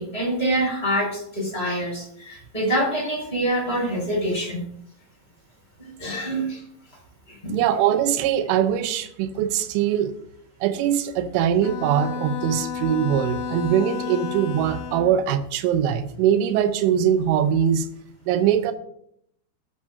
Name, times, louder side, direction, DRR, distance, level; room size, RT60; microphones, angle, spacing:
voice 1, 0.0-4.6 5.8-6.6 7.3-7.6, right 1 dB, 10° left, -2 dB, 4.7 m, -26 dB
voice 2, 7.5-10.1 10.6-17.9 18.3-18.7, right 9 dB, 80° right, 8 dB, 3.2 m, -22 dB
Bowed string instrument, 11.6-15.2, left 6 dB, 75° left, 2.2 m, -32 dB
18.5 x 9.0 x 2.7 m, 0.69 s
omnidirectional pair, 5.8 m